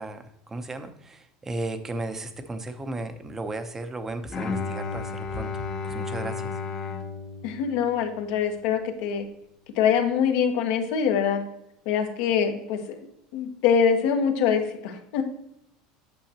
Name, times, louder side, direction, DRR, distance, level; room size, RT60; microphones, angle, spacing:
voice 1, 0.0-6.5, right 2 dB, 15° right, 8 dB, 0.7 m, -35 dB
Bowed string instrument, 4.3-8.5, left 4 dB, 25° left, 0.8 m, -33 dB
voice 2, 7.4-9.2 9.8-11.4 11.9-13.1 13.3-15.2, left 7 dB, 70° left, 5 dB, 1.2 m, -24 dB
8.5 x 6.3 x 2.9 m, 0.78 s
cardioid pair, 140°, 3 cm